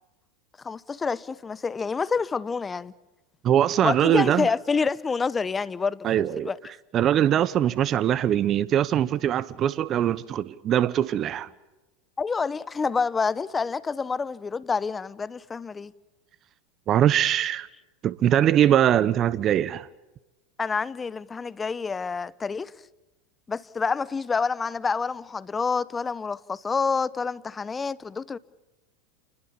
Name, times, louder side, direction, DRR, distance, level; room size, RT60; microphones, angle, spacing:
voice 1, 0.6-2.9 3.8-6.6 12.2-15.9 20.6-22.7 23.5-28.4, left 5 dB, 20° left, 1.0 m, -28 dB
voice 2, 3.4-4.5 6.0-6.5 6.9-11.5 16.9-17.7 18.0-19.9, right 10 dB, 40° right, 1.0 m, -22 dB
28.5 x 21.0 x 7.1 m
hypercardioid pair, 95°, 0 cm